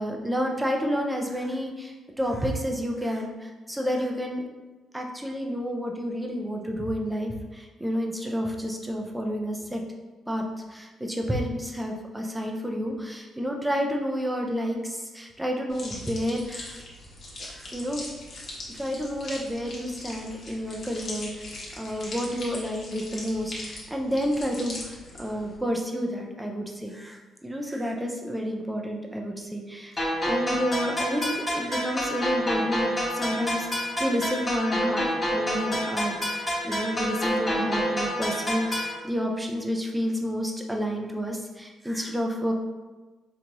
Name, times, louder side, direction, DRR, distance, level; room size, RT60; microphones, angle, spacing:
voice 1, 0.0-4.4 4.9-9.8 10.3-10.4 10.7-16.8 17.4-18.0 18.7-29.9 30.2-35.1 35.3-42.5, equal, 10° right, 1 dB, 0.6 m, -30 dB
sound 1, 15.7-25.6, left 2 dB, 50° left, 1.1 m, -41 dB
sound 2, 30.0-39.0, equal, 20° left, 1.3 m, -28 dB
4.5 x 2.5 x 2.9 m, 1.2 s
cardioid pair, 90°, 0 cm